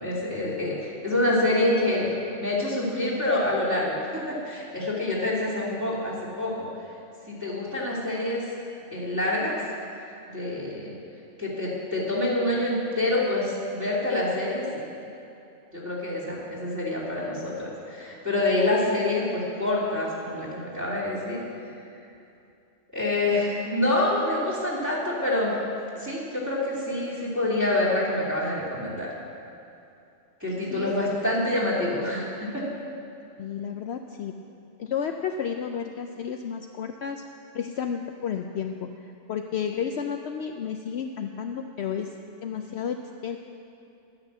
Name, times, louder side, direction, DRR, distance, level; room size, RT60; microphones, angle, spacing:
voice 1, 0.0-2.1 2.4-6.7 7.3-8.4 8.9-9.6 10.3-10.9 11.4-14.8 15.7-21.4 22.9-25.6 26.0-29.1 30.4-32.6, left 2 dB, 15° right, -8 dB, 2.8 m, -26 dB
voice 2, 33.4-34.3 34.8-37.2 37.5-42.1 42.4-43.4, left 7 dB, 65° left, 5 dB, 0.8 m, -32 dB
10.5 x 9.7 x 7.4 m, 2.7 s
omnidirectional pair, 1.3 m